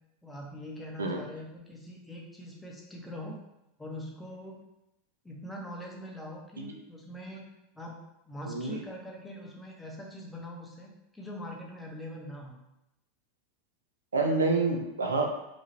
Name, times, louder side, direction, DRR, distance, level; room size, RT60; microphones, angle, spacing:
voice 1, 0.2-3.4 3.8-4.6 5.2-7.5 7.8-12.6, equal, 5° left, -1 dB, 0.7 m, -43 dB
voice 2, 8.5-8.8 14.1-15.3, right 3 dB, 75° right, 2 dB, 0.4 m, -28 dB
3.0 x 2.3 x 2.8 m, 0.88 s
figure-of-eight pair, 85°, 0 cm